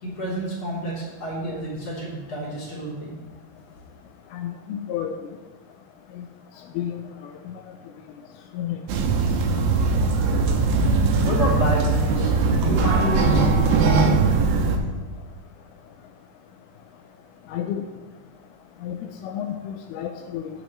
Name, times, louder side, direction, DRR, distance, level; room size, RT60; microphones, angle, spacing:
voice 1, 0.0-3.1 11.2-14.2, right 1 dB, 30° left, -7 dB, 3.6 m, -28 dB
voice 2, 4.3-5.1 6.8-7.0 8.5-8.8 17.5-17.8 18.8-19.0 19.2-20.5, left 10 dB, 85° left, 5 dB, 2.2 m, -30 dB
sound 1, 8.9-14.8, right 4 dB, 80° right, 3.1 m, -20 dB
17.5 x 6.9 x 3.1 m, 1.3 s
omnidirectional pair, 5.1 m